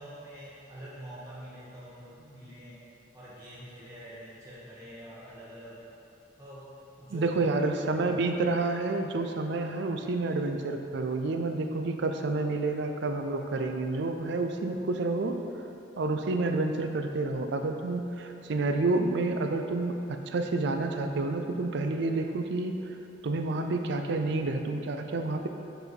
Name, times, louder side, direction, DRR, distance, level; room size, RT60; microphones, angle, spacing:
voice 1, 0.0-2.8 3.1-5.9 6.4-7.4, equal, 15° right, -10 dB, 1.0 m, -46 dB
voice 2, 7.1-15.4 16.0-22.7 23.2-25.5, right 3 dB, 65° right, 5 dB, 0.5 m, -29 dB
5.8 x 4.6 x 5.3 m, 2.8 s
head